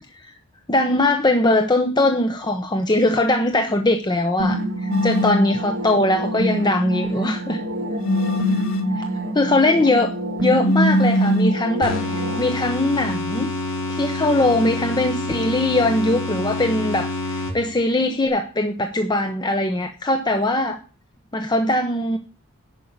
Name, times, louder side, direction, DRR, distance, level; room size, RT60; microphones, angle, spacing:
voice 1, 0.7-7.6 9.0-9.1 9.3-10.1 10.4-13.5 13.9-20.8 21.3-22.2, left 2 dB, 20° left, 5 dB, 0.8 m, -21 dB
sound 1, 4.4-12.4, right 1 dB, 60° right, 2.6 m, -27 dB
sound 2, 4.9-5.5 8.0-9.0 10.6-11.6, equal, 75° left, 1.4 m, -20 dB
sound 3, 11.8-17.9, left 2 dB, 55° left, 2.9 m, -27 dB
10.5 x 5.6 x 8.0 m, 0.35 s
head